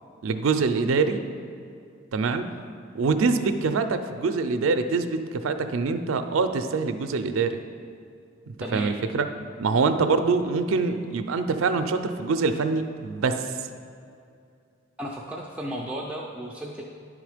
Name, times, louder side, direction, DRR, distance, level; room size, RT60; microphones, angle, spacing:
voice 1, 0.2-1.2 2.1-2.5 2.9-7.6 8.7-9.2 9.6-13.5, right 4 dB, 85° right, 9 dB, 0.4 m, -24 dB
voice 2, 8.6-8.9 15.0-16.8, right 1 dB, 5° right, -3 dB, 0.4 m, -34 dB
10.0 x 3.6 x 4.9 m, 2.4 s
head